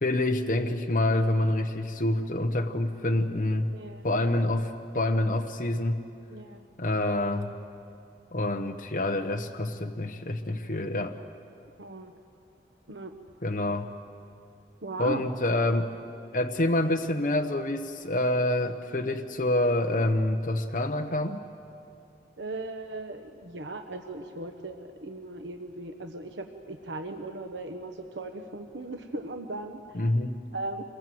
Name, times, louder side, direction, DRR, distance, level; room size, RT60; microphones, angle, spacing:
voice 1, 0.0-3.7 4.0-6.0 6.8-7.5 8.3-11.2 13.4-13.9 15.0-15.9 16.3-21.4 29.9-30.4, left 1 dB, 45° left, 4 dB, 1.0 m, -27 dB
voice 2, 3.7-4.1 6.3-6.7 11.8-12.1 12.9-13.2 14.8-15.2 22.4-30.0 30.5-30.8, right 2 dB, 90° right, 5 dB, 1.2 m, -38 dB
27.5 x 21.5 x 7.8 m, 2.5 s
head